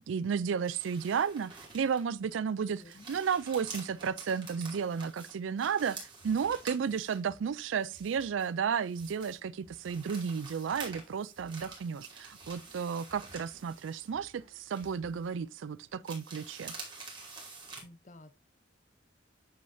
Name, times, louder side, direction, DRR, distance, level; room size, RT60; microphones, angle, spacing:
voice 1, 0.1-2.8 3.1-16.7, right 6 dB, 80° right, 0.4 m, -33 dB
sound 1, 0.6-2.2 2.6-7.3 7.8-9.4 9.7-14.4 14.7-15.3 16.0-17.8, right 3 dB, 25° right, 2.5 m, -48 dB
voice 2, 2.7-3.2 17.8-18.3, left 2 dB, 40° left, 0.7 m, -53 dB
sound 2, 6.2-15.7, equal, 65° right, 1.5 m, -63 dB
8.6 x 6.3 x 2.7 m
head